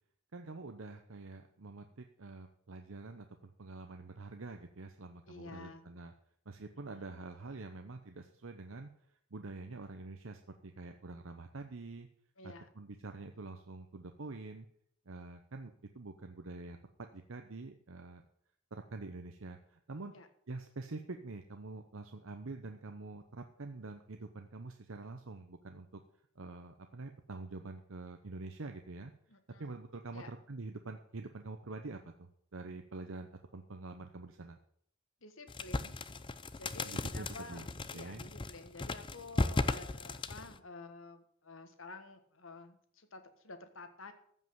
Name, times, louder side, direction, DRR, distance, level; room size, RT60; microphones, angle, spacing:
voice 1, 0.3-6.1 6.5-8.9 9.3-12.1 12.4-14.7 15.1-18.2 18.7-20.1 20.5-26.0 26.4-29.1 29.6-34.6 36.8-37.7 37.9-38.2, right 3 dB, 70° right, 6 dB, 0.8 m, -46 dB
voice 2, 5.3-5.9 12.4-12.7 20.1-20.3 29.3-29.8 30.1-30.3 35.2-36.0 36.6-44.1, left 3 dB, 70° left, 9 dB, 1.5 m, -51 dB
sound 1, 35.5-40.6, left 2 dB, 25° left, 0.5 m, -36 dB
14.5 x 5.5 x 8.0 m, 0.66 s
head